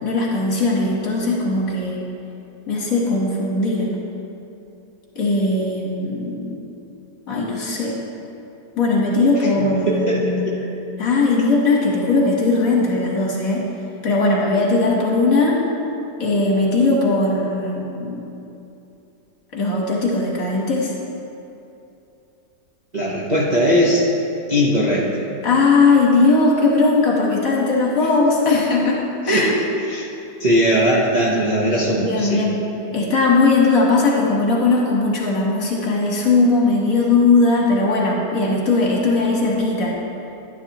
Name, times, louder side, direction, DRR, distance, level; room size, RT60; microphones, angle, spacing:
voice 1, 0.0-2.0 2.7-3.9 5.2-6.7 7.3-8.0 8.8-10.6 11.0-13.7 14.0-15.6 16.2-18.2 19.5-20.9 25.4-29.0 29.3-29.5 32.1-32.6 32.9-40.0, left 3 dB, 55° left, -3 dB, 1.8 m, -18 dB
voice 2, 9.6-10.6 22.9-24.0 24.5-25.1 29.2-29.5 29.9-30.1 30.4-32.4, equal, 30° right, -6 dB, 0.9 m, -19 dB
11.0 x 10.0 x 3.0 m, 2.8 s
omnidirectional pair, 1.9 m